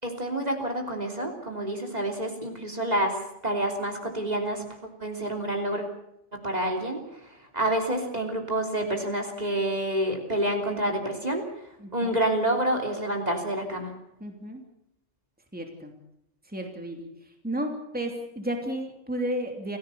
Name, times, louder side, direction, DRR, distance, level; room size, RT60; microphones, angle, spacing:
voice 1, 0.0-4.6 5.0-5.8 6.3-11.4 11.9-13.9, right 1 dB, 35° right, 4 dB, 3.4 m, -28 dB
voice 2, 11.8-12.2 14.2-14.6 15.5-15.9 16.5-17.1 17.4-19.8, right 1 dB, 5° right, 3 dB, 3.0 m, -32 dB
28.5 x 15.5 x 7.0 m, 0.80 s
omnidirectional pair, 1.3 m